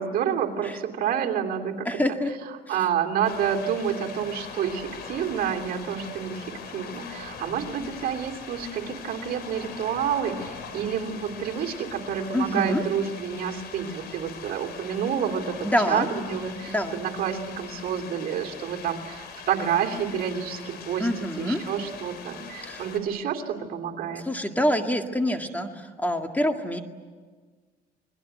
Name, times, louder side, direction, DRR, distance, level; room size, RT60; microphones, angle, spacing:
voice 1, 0.0-2.0 2.7-21.1 21.4-24.2, right 8 dB, 60° right, 3 dB, 3.1 m, -29 dB
voice 2, 1.9-2.3 12.3-12.8 15.6-16.1 16.7-17.0 21.0-21.6 22.6-22.8 24.3-26.8, equal, 10° left, 5 dB, 1.9 m, -26 dB
sound 1, 3.2-23.0, left 6 dB, 70° left, 5.1 m, -41 dB
28.5 x 21.0 x 9.3 m, 1.5 s
cardioid pair, 110°, 17 cm